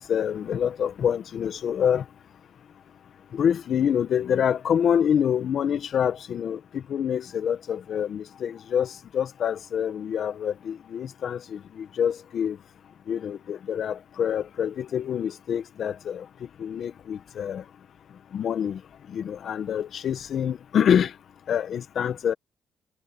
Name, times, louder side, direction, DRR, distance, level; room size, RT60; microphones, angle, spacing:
voice 1, 0.0-2.0 3.3-6.6 6.9-12.6 13.1-16.2 16.6-17.6 18.3-18.8 19.1-21.1 21.5-22.3, left 8 dB, 60° left, 1.4 m, -26 dB
cardioid pair, 90°, 0 cm